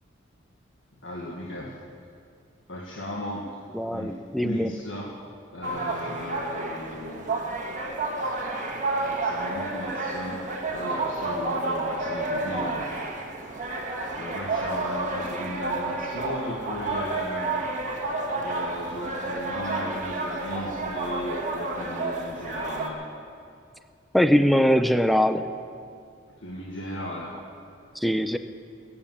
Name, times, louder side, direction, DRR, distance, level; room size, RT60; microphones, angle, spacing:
voice 1, 1.0-1.8 2.7-3.5 3.9-5.1 5.5-7.3 9.0-12.9 14.2-17.7 18.4-23.0 26.4-27.4, left 1 dB, 70° left, -2 dB, 1.6 m, -36 dB
voice 2, 3.7-4.7 24.1-25.5 28.0-28.4, equal, ahead, 10 dB, 0.6 m, -21 dB
sound 1, 5.6-22.9, right 2 dB, 40° right, 1.7 m, -30 dB
20.5 x 8.7 x 7.5 m, 2.3 s
head